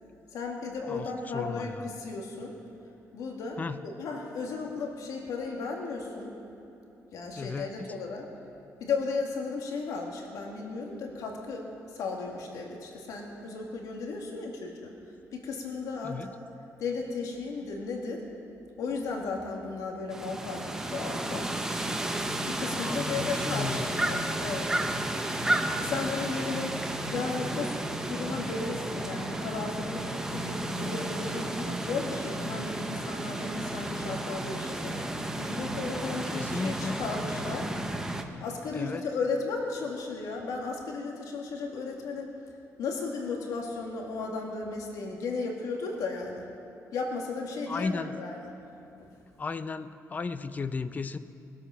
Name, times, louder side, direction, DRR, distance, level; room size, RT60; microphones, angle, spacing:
voice 1, 0.3-2.5 3.1-3.6 3.8-6.4 7.1-8.3 8.8-14.9 15.3-16.4 16.8-18.2 18.8-21.4 22.4-24.9 25.8-26.7 27.1-27.7 28.1-35.1 35.4-37.7 38.4-42.3 42.8-46.5 46.9-48.5 49.0-49.1, left 4 dB, 75° left, 1 dB, 1.9 m, -35 dB
voice 2, 1.3-1.7 3.6-3.8 7.4-7.9 16.0-16.3 22.8-24.1 25.9-26.0 36.3-37.0 38.7-39.0 47.7-48.1 49.4-51.2, left 4 dB, 25° left, 12 dB, 0.5 m, -35 dB
sound 1, 20.1-38.2, right 1 dB, 10° right, 0.9 m, -32 dB
21.0 x 8.1 x 5.7 m, 2.9 s
cardioid pair, 125°, 6 cm